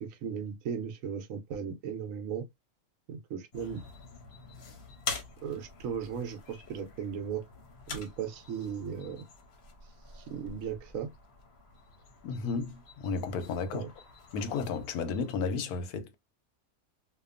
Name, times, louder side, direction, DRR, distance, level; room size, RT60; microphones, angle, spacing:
voice 1, 0.0-2.5 3.1-3.8 5.4-7.4 7.9-9.3 10.1-11.1 13.7-13.9, right 7 dB, 70° right, 1.0 m, -36 dB
sound 1, 3.5-15.4, left 4 dB, 55° left, 0.8 m, -46 dB
voice 2, 12.2-13.8 14.3-16.1, left 5 dB, 90° left, 1.1 m, -33 dB
2.8 x 2.2 x 2.4 m
omnidirectional pair, 1.6 m